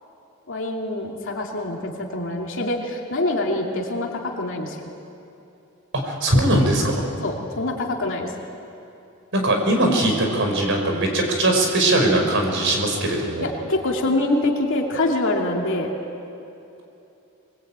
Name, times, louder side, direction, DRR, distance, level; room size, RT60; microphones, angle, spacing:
voice 1, 0.5-4.9 7.2-8.3 13.4-15.9, left 2 dB, 65° left, 0 dB, 2.6 m, -25 dB
voice 2, 5.9-7.0 9.3-13.4, right 1 dB, 60° right, 2 dB, 5.2 m, -20 dB
23.5 x 21.5 x 8.9 m, 2.9 s
head